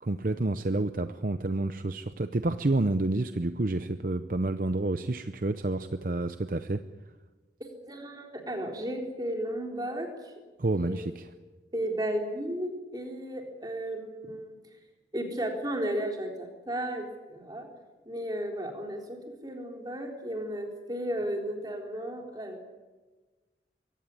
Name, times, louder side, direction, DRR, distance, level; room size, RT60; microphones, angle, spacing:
voice 1, 0.0-6.8 10.6-11.3, right 2 dB, 50° right, 10 dB, 0.7 m, -29 dB
voice 2, 7.6-10.3 10.7-11.1 11.7-14.5 15.1-17.7 18.1-19.2 19.4-22.6, right 1 dB, 20° right, 2 dB, 3.8 m, -34 dB
23.0 x 17.0 x 9.8 m, 1.3 s
head